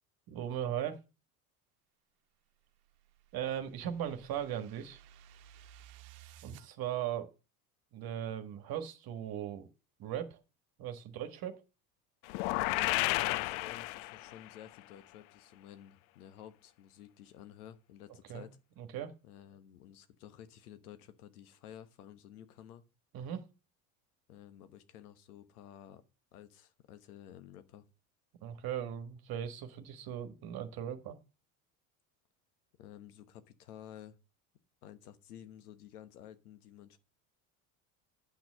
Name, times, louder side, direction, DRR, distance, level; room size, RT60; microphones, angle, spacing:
voice 1, 0.3-1.0 3.3-5.0 6.4-7.3 7.9-9.7 10.0-10.4 10.8-11.6 18.3-18.5 18.8-19.1 23.1-23.5 28.4-31.2, right 10 dB, 55° right, 1.6 m, -38 dB
sound 1, 2.6-6.7, right 10 dB, 75° right, 1.1 m, -56 dB
sound 2, 12.3-14.5, left 19 dB, 65° left, 0.6 m, -32 dB
voice 2, 12.7-18.6 19.2-22.8 24.3-26.0 26.3-27.9 32.8-34.2 34.8-37.0, left 10 dB, 85° left, 1.3 m, -52 dB
10.0 x 6.2 x 6.3 m
hypercardioid pair, 80°, 44 cm